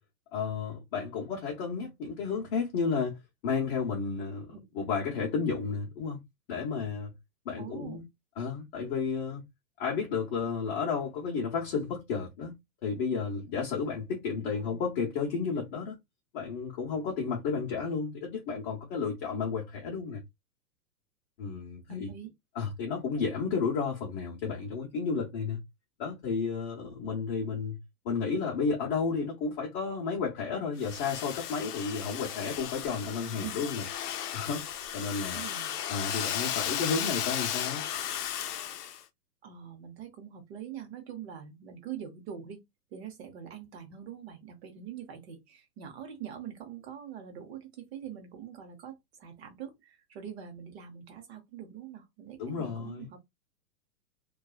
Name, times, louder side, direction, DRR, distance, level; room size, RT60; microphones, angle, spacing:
voice 1, 0.3-6.2 6.5-7.1 7.4-8.0 8.4-9.4 9.8-16.0 16.3-20.2 21.4-22.1 22.5-25.6 26.0-27.8 28.0-33.8 34.3-34.7 34.9-35.4 35.9-37.8 52.4-53.1, left 5 dB, 35° left, 0.8 m, -32 dB
voice 2, 7.6-8.1 14.3-14.8 21.9-22.3 33.3-33.7 35.2-35.8 39.4-42.6 42.9-53.2, right 9 dB, 40° right, 0.8 m, -44 dB
Domestic sounds home sounds, 30.8-39.0, left 10 dB, 65° left, 0.6 m, -35 dB
2.6 x 2.3 x 2.3 m
hypercardioid pair, 150°, 50 cm